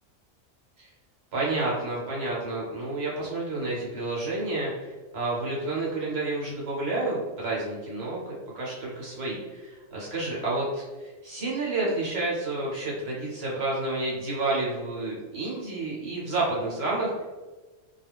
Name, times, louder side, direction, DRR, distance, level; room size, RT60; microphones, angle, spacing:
voice 1, 1.3-4.7 5.1-17.2, right 2 dB, 55° right, -5 dB, 1.1 m, -30 dB
2.4 x 2.1 x 3.4 m, 1.3 s
omnidirectional pair, 1.3 m